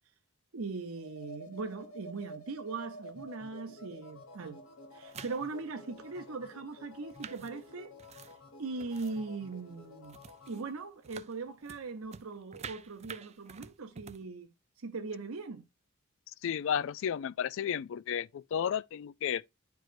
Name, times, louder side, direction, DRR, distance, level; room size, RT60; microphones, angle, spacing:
voice 1, 0.5-4.6 4.9-7.9 8.6-10.1 10.5-14.5 14.8-15.6, right 4 dB, 80° right, 0.8 m, -40 dB
sound 1, 0.9-10.7, equal, 90° left, 1.5 m, -51 dB
sound 2, 5.0-5.6 6.1-6.2 6.9-9.3 9.5-9.8 10.0-10.7 11.0-14.2, right 6 dB, 30° right, 0.4 m, -49 dB
voice 2, 16.4-19.5, left 8 dB, 65° left, 0.3 m, -33 dB
10.5 x 4.7 x 2.5 m
head